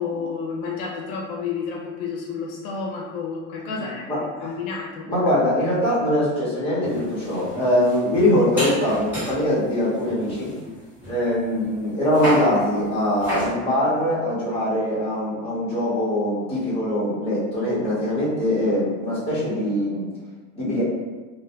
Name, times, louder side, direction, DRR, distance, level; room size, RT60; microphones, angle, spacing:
voice 1, 0.0-4.1 4.4-5.3, left 5 dB, 65° left, -1 dB, 0.6 m, -30 dB
voice 2, 3.7-4.5 5.1-10.5 11.1-20.1 20.6-20.8, left 1 dB, 15° left, -9 dB, 0.8 m, -22 dB
sound 1, 6.8-9.5 10.0-11.8 12.1-12.5 13.2-13.5, equal, 5° right, 1.3 m, -31 dB
2.1 x 2.1 x 2.8 m, 1.3 s
supercardioid pair, 125°, 46 cm